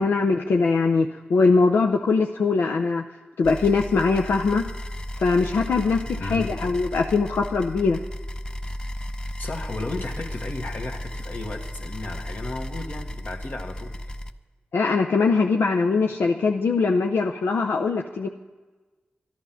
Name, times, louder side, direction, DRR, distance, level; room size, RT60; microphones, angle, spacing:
voice 1, 0.0-3.0 3.4-4.6 5.2-8.0 14.7-18.3, left 4 dB, 85° left, 3 dB, 0.6 m, -21 dB
sound 1, 3.4-14.3, equal, 25° left, 0.6 m, -34 dB
voice 2, 6.0-6.6 9.4-14.1, left 2 dB, 60° left, 3 dB, 1.6 m, -34 dB
12.0 x 11.5 x 5.6 m, 1.3 s
cardioid pair, 50°, 4 cm